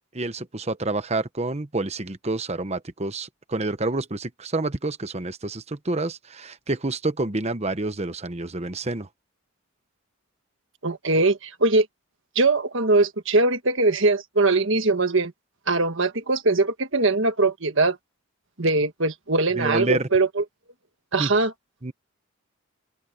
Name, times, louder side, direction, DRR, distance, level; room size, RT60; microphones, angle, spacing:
voice 1, 0.1-9.1 19.5-20.1 21.2-21.3 21.8-21.9, right 2 dB, 30° right, 1.0 m, -28 dB
voice 2, 10.8-11.9 12.4-15.3 15.7-18.0 18.6-20.4 21.1-21.5, right 3 dB, 55° right, 1.6 m, -21 dB
open air
head